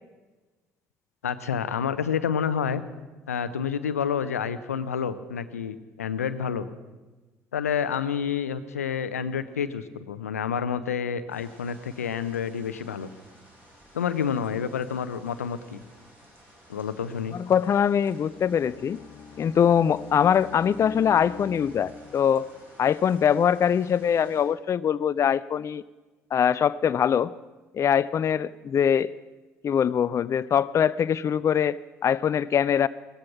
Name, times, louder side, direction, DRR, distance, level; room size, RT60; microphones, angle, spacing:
voice 1, 1.2-2.8 3.3-6.7 7.5-13.1 13.9-15.8 16.7-17.4, left 7 dB, 85° left, 13 dB, 0.7 m, -29 dB
sound 1, 11.3-24.4, equal, 25° right, 6.6 m, -53 dB
voice 2, 17.3-19.0 19.4-22.5 22.8-25.8 26.3-27.3 27.7-29.1 29.6-32.9, left 8 dB, 40° left, 17 dB, 0.4 m, -23 dB
Bowed string instrument, 18.1-22.5, left 5 dB, 55° left, 1.3 m, -45 dB
16.5 x 13.5 x 5.9 m, 1.2 s
hypercardioid pair, 55°, 8 cm